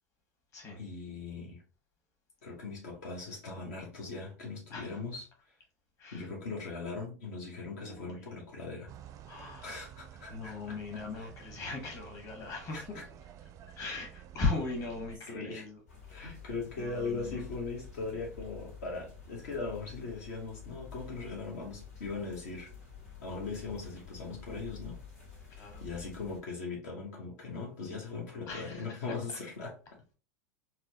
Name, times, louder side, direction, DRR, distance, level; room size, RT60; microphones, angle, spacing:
voice 1, 0.8-1.6 2.4-5.3 6.1-8.9 9.6-11.3 12.7-12.8 15.3-15.6 16.1-22.7 23.2-25.0 25.8-29.8, left 4 dB, 70° left, 1.0 m, -39 dB
voice 2, 4.7-5.0 6.0-6.3 7.7-8.2 9.3-9.8 10.3-13.0 13.8-15.8 16.1-16.3 16.8-17.4 25.5-25.8 28.5-29.0, left 3 dB, 40° left, 1.4 m, -38 dB
sound 1, 8.9-15.2, right 10 dB, 40° right, 0.4 m, -51 dB
sound 2, 15.9-26.4, left 6 dB, 85° left, 1.7 m, -49 dB
4.1 x 2.2 x 2.7 m
hypercardioid pair, 90°, 9 cm